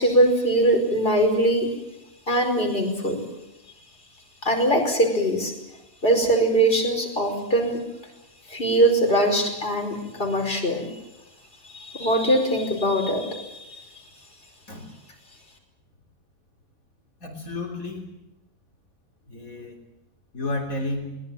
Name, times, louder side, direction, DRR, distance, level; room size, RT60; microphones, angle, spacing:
voice 1, 0.0-1.7 2.3-3.3 4.4-5.5 6.0-7.8 8.5-10.9 11.7-13.8, right 1 dB, 40° left, 2 dB, 5.4 m, -22 dB
voice 2, 17.2-18.1 19.3-19.8 20.3-21.2, left 2 dB, 80° left, 0 dB, 3.8 m, -32 dB
22.5 x 20.0 x 9.0 m, 0.96 s
omnidirectional pair, 1.4 m